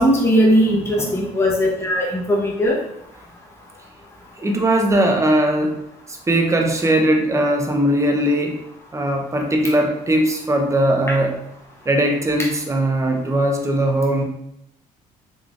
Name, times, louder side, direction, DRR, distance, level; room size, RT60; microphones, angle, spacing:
voice 1, 0.0-2.8, equal, 15° left, -4 dB, 1.0 m, -18 dB
voice 2, 4.4-5.8 6.1-8.6 8.9-11.4 11.9-14.2, right 1 dB, 20° right, 2 dB, 0.7 m, -19 dB
3.8 x 3.3 x 2.5 m, 0.79 s
supercardioid pair, 75°, 16 cm